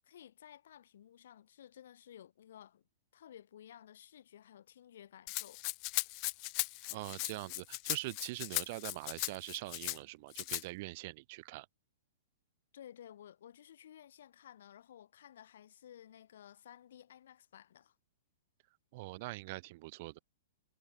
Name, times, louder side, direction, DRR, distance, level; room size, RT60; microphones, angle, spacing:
voice 1, 0.0-2.8 3.1-5.6 12.7-17.9, left 10 dB, 65° left, 7.0 m, -55 dB
Rattle (instrument), 5.3-10.0 10.3-10.6, left 37 dB, 30° left, 0.7 m, -38 dB
voice 2, 6.9-11.7 18.9-20.2, right 22 dB, 40° right, 1.8 m, -43 dB
hypercardioid pair, 165°, 0 cm